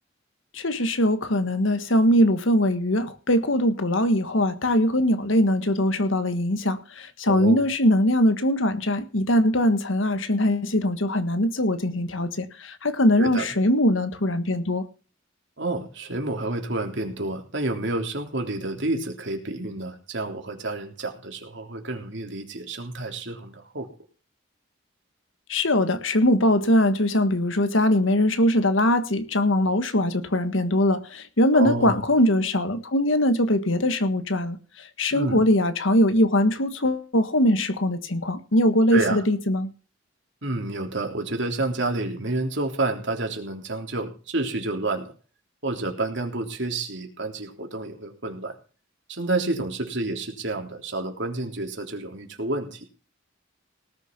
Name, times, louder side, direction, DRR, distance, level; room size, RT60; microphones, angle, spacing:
voice 1, 0.5-14.9 25.5-39.7, left 1 dB, 70° left, 10 dB, 1.6 m, -22 dB
voice 2, 7.3-7.6 13.2-13.5 15.6-23.9 31.5-32.0 35.1-35.4 38.9-39.2 40.4-45.1 45.6-48.6 49.1-52.8, right 2 dB, 60° right, 4 dB, 3.5 m, -29 dB
19.0 x 6.8 x 6.0 m, 0.37 s
head